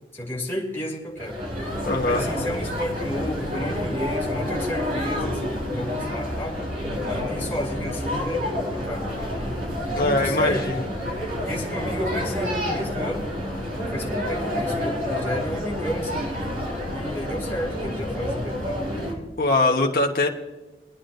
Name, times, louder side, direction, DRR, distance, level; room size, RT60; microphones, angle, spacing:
voice 1, 0.1-1.4 2.0-6.6 7.1-10.6 11.5-13.3 13.8-16.3 16.9-19.3, equal, 15° left, -3 dB, 2.7 m, -32 dB
sound 1, 1.2-19.1, left 1 dB, 50° right, 4.2 m, -29 dB
voice 2, 1.8-2.3 10.0-10.8 19.4-20.3, left 2 dB, 50° left, 1 dB, 1.1 m, -22 dB
22.5 x 9.9 x 2.6 m, 1.1 s
head